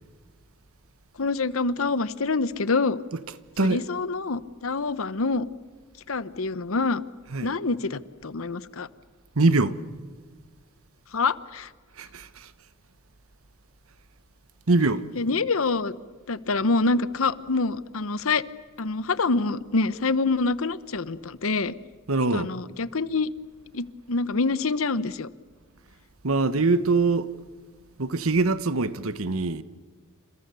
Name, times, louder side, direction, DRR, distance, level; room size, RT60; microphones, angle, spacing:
voice 1, 1.2-3.0 3.6-5.5 6.1-7.0 7.4-8.9 11.1-11.7 15.2-16.0 16.3-18.4 18.8-21.7 22.3-23.3 23.7-25.3, left 3 dB, 70° left, 0.9 m, -26 dB
voice 2, 9.3-9.8 12.0-12.5 14.7-15.1 22.1-22.5 26.2-27.3 28.0-29.6, right 3 dB, 75° right, 1.2 m, -23 dB
29.0 x 27.5 x 6.9 m
head